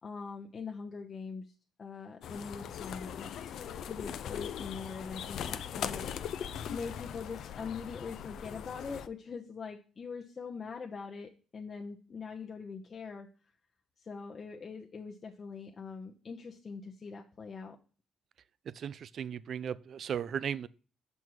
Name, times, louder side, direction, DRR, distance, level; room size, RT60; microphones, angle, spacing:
voice 1, 0.0-3.5 3.8-6.0 6.7-13.3 14.0-17.8, left 5 dB, 45° left, 0.8 m, -43 dB
sound 1, 2.2-9.1, left 9 dB, 75° left, 0.5 m, -40 dB
voice 2, 18.7-20.7, right 8 dB, 60° right, 0.4 m, -36 dB
6.1 x 5.5 x 4.7 m
cardioid pair, 90°, 0 cm